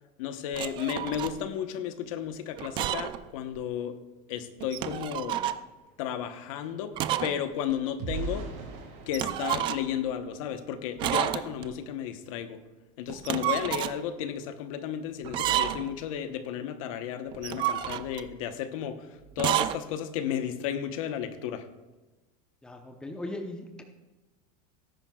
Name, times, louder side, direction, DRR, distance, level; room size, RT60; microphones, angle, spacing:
voice 1, 0.2-4.0 4.3-5.4 6.0-6.9 7.2-8.4 9.1-12.6 13.0-19.1 19.4-21.6, left 9 dB, 70° left, 9 dB, 1.0 m, -33 dB
sound 1, 0.5-1.4 2.6-3.2 3.6-3.7 4.6-5.6 7.0-7.4 7.7-7.8 9.1-10.0 11.0-11.7 13.1-14.0 15.2-16.0 17.3-18.3 19.3-19.8, right 12 dB, 25° right, 0.3 m, -30 dB
sound 2, 5.6-10.9 11.4-11.6 12.0-12.2, right 4 dB, 55° right, 4.4 m, -42 dB
voice 2, 22.6-23.8, left 1 dB, 5° left, 4 dB, 0.8 m, -38 dB
19.5 x 10.5 x 2.3 m, 1.2 s
supercardioid pair, 170°, 18 cm